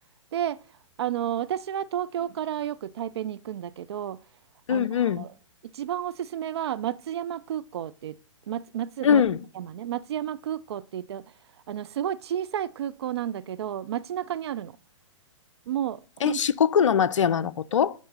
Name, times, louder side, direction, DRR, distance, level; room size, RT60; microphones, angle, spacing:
voice 1, 0.3-0.6 1.0-4.2 4.7-5.3 5.6-8.2 8.5-9.2 9.5-11.3 11.7-14.8 15.7-16.4, right 10 dB, 55° right, 0.4 m, -31 dB
voice 2, 4.7-5.2 9.0-9.4 16.2-17.9, left 8 dB, 70° left, 0.5 m, -22 dB
9.0 x 3.2 x 5.4 m
figure-of-eight pair, 120°, 17 cm